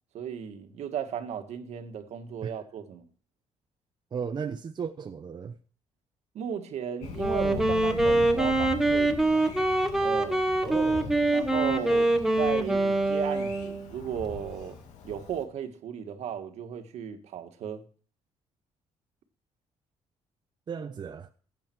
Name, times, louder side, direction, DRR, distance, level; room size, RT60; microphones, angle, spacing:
voice 1, 0.1-3.1 6.3-9.4 10.0-10.4 11.3-12.1 12.4-14.8 15.0-17.8, right 8 dB, 75° right, 1.8 m, -35 dB
voice 2, 4.1-5.5 10.6-11.1 20.7-21.3, right 6 dB, 40° right, 0.8 m, -35 dB
Thunder, 7.0-15.4, left 5 dB, 85° left, 2.1 m, -41 dB
Wind instrument woodwind instrument, 7.1-13.9, right 2 dB, 5° right, 1.5 m, -25 dB
15.0 x 8.5 x 4.5 m
cardioid pair, 110°, 12 cm